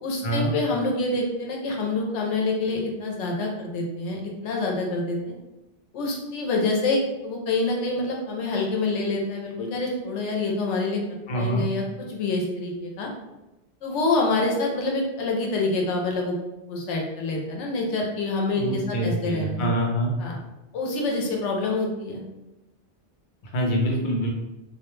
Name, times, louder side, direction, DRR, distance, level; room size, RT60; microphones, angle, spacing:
voice 1, 0.0-5.3 5.9-13.1 13.8-16.4 16.7-19.7 20.2-20.4 20.7-22.2, left 2 dB, 85° left, 0 dB, 0.9 m, -26 dB
voice 2, 11.3-11.7 18.6-20.1 23.5-24.3, right 1 dB, 55° left, -1 dB, 0.6 m, -25 dB
2.3 x 2.1 x 3.0 m, 0.98 s
omnidirectional pair, 1.2 m